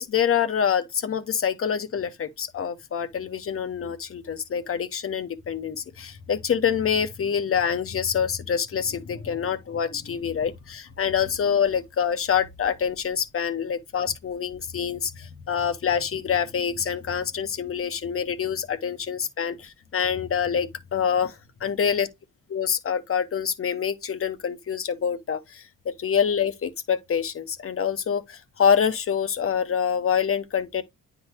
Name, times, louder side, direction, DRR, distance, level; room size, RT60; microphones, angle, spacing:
voice 1, 0.0-22.1 22.5-30.8, left 7 dB, 45° left, 1.3 m, -26 dB
9.4 x 4.0 x 3.0 m
cardioid pair, 90°, 30 cm